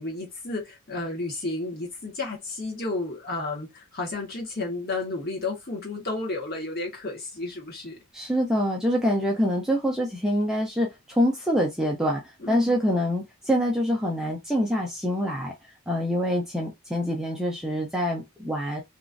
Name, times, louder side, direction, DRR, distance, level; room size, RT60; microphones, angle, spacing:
voice 1, 0.0-8.0 12.4-12.7, left 2 dB, 45° left, 1.2 m, -32 dB
voice 2, 8.1-12.2 12.5-15.5 15.9-18.8, equal, ahead, 0.4 m, -25 dB
2.9 x 2.5 x 2.5 m
head